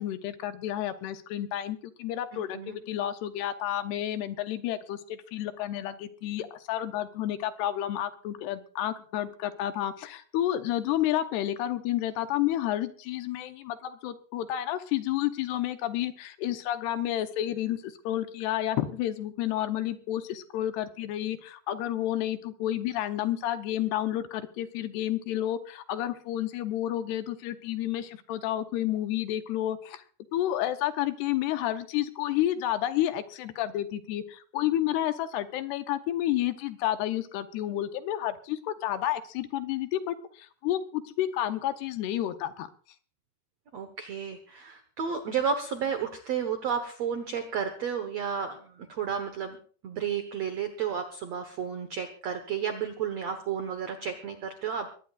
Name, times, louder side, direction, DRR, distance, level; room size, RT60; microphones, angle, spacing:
voice 1, 0.0-30.0 30.3-42.7, left 12 dB, 75° left, 9 dB, 2.8 m, -30 dB
voice 2, 43.7-49.6 49.8-54.9, right 7 dB, 80° right, 7 dB, 1.4 m, -32 dB
22.5 x 18.0 x 2.4 m, 0.42 s
omnidirectional pair, 5.0 m